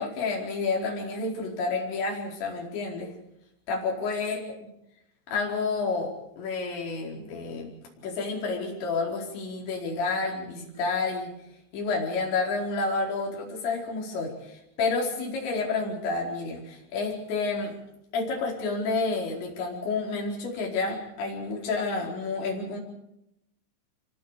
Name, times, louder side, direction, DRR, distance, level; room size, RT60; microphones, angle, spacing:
voice 1, 0.0-3.1 3.7-4.4 5.3-7.7 8.0-11.3 11.7-14.5 14.8-17.7 18.1-22.8, left 3 dB, 65° left, -1 dB, 6.9 m, -30 dB
27.0 x 24.0 x 5.0 m, 0.82 s
omnidirectional pair, 5.5 m